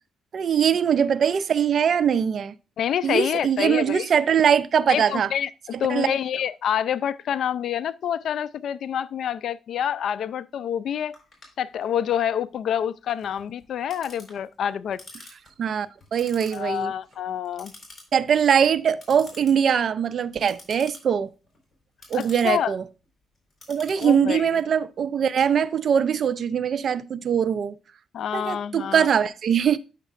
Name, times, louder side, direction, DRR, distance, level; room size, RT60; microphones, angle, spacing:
voice 1, 0.3-2.5 3.0-5.3 5.7-6.2 15.6-16.9 18.1-21.3 22.1-22.8 23.7-27.8 28.3-29.8, right 8 dB, 55° right, 0.4 m, -22 dB
voice 2, 2.8-4.1 4.9-5.5 5.8-11.1 11.6-15.0 16.5-17.7 22.1-22.7 24.0-24.6 28.1-29.1, left 9 dB, 65° left, 0.3 m, -27 dB
Clock, 11.1-26.1, left 2 dB, 30° left, 4.3 m, -50 dB
8.9 x 6.5 x 2.5 m
cardioid pair, 90°, 0 cm